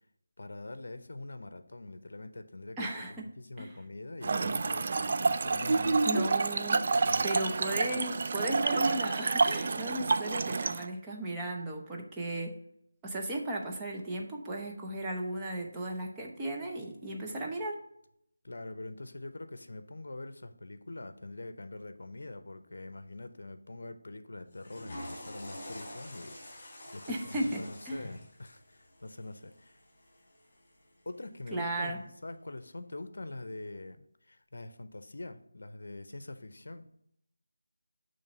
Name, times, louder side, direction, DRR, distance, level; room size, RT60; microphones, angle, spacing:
voice 1, 0.4-6.1 7.0-7.3 7.7-8.0 18.4-29.8 31.1-36.9, left 2 dB, 65° left, 10 dB, 0.7 m, -44 dB
voice 2, 2.8-3.3 3.6-3.7 6.0-6.9 7.2-12.5 13.0-17.8 27.1-28.0 31.5-32.0, right 1 dB, 10° right, -1 dB, 0.8 m, -35 dB
Trickle dribble / Fill (with liquid), 4.2-10.9, right 4 dB, 40° right, 0.3 m, -29 dB
Water / Toilet flush, 24.5-30.7, left 1 dB, 30° left, 2.2 m, -47 dB
6.6 x 3.2 x 5.8 m, 0.74 s
figure-of-eight pair, 165°, 0 cm